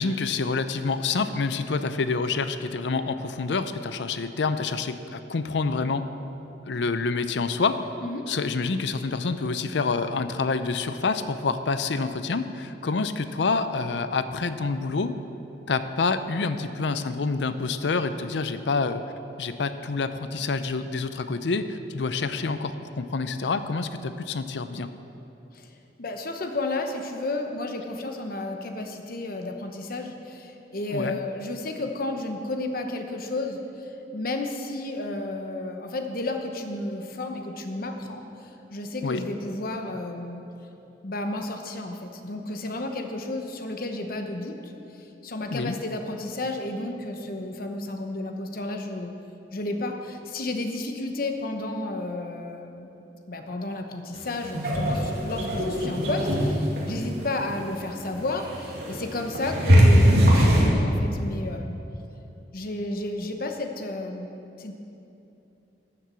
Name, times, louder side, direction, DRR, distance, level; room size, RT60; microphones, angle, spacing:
voice 1, 0.0-6.0 6.6-7.8 8.3-15.2 15.7-19.0 19.4-24.9 30.9-31.2 39.0-39.2 45.5-45.8, left 4 dB, 75° left, 11 dB, 0.5 m, -27 dB
voice 2, 26.0-38.2 38.7-40.4 41.0-44.7 45.0-49.1 49.5-52.9 53.3-61.8 62.5-64.3 64.6-64.7, left 2 dB, 55° left, 4 dB, 1.0 m, -32 dB
sound 1, 54.2-60.7, equal, 65° right, 2.6 m, -22 dB
12.0 x 7.6 x 6.9 m, 2.9 s
head